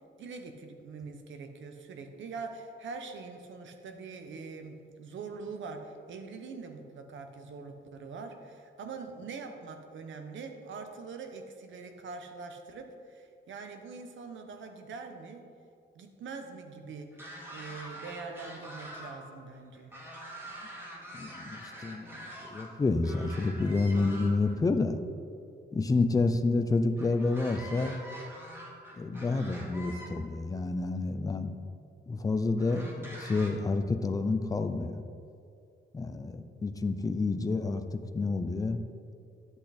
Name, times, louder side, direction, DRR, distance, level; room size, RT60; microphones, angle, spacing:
voice 1, 0.2-15.4 15.9-17.1 17.5-20.0, right 4 dB, 75° right, 5 dB, 1.1 m, -43 dB
sound 1, 17.1-19.1 19.5-22.7 23.0-24.6 27.0-30.1 31.0-31.1 32.6-33.5, right 1 dB, 10° right, 1.7 m, -45 dB
voice 2, 21.1-25.0 25.7-27.9 29.0-31.6 32.1-34.9 35.9-38.8, left 3 dB, 20° left, 8 dB, 0.5 m, -29 dB
10.5 x 8.2 x 4.3 m, 2.4 s
wide cardioid pair, 170°, 20 cm